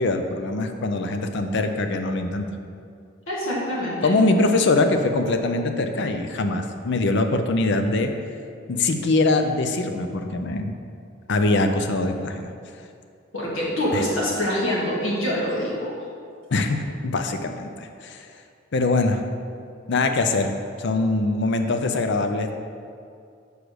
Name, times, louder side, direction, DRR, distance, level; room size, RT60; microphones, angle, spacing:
voice 1, 0.0-2.5 4.0-8.1 8.7-10.7 11.3-12.5 13.9-14.0 16.5-18.2 18.7-19.2 19.9-20.5 20.8-22.5, left 2 dB, 60° left, 6 dB, 0.5 m, -23 dB
voice 2, 3.3-4.1 13.3-15.9, equal, 80° left, -5 dB, 1.8 m, -25 dB
5.0 x 4.9 x 6.3 m, 2.4 s
head